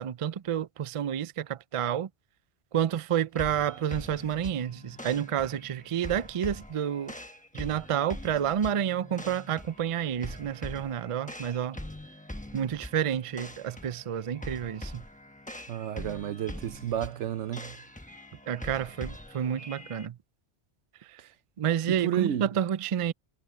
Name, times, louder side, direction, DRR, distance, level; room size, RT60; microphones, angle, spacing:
voice 1, 0.0-2.1 2.7-7.1 7.5-11.8 12.5-15.0 18.5-20.2 21.6-23.1, right 9 dB, 60° right, 0.3 m, -29 dB
sound 1, 3.3-20.1, left 1 dB, 5° left, 1.0 m, -43 dB
voice 2, 15.7-17.8 21.9-22.5, right 11 dB, 85° right, 1.0 m, -31 dB
omnidirectional pair, 1.2 m